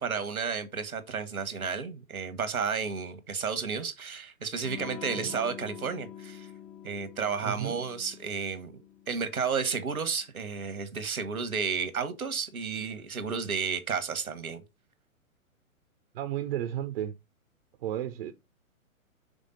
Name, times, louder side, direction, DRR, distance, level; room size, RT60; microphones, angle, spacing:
voice 1, 0.0-6.5 6.8-8.8 9.1-14.6, right 5 dB, 85° right, 1.3 m, -32 dB
Electric guitar / Strum, 4.6-10.0, left 9 dB, 25° left, 0.7 m, -45 dB
voice 2, 7.4-7.8 16.1-17.1 17.8-18.3, right 11 dB, 45° right, 0.7 m, -33 dB
5.2 x 3.6 x 5.5 m
figure-of-eight pair, 120°, 42 cm